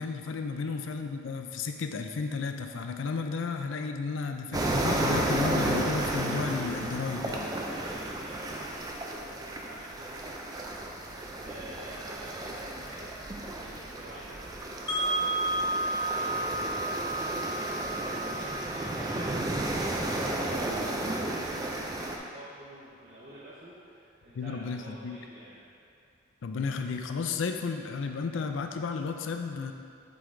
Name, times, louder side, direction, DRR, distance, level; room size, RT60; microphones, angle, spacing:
voice 1, 0.0-7.5 24.3-25.2 26.4-29.7, left 4 dB, 75° left, 5 dB, 0.4 m, -33 dB
sound 1, 4.5-22.2, right 1 dB, 20° right, 0.3 m, -33 dB
voice 2, 7.6-10.5 11.4-25.6, right 1 dB, 40° right, -9 dB, 0.8 m, -48 dB
Wind chime, 14.9-20.9, right 2 dB, 20° left, 1.2 m, -33 dB
7.6 x 3.9 x 3.3 m, 2.4 s
head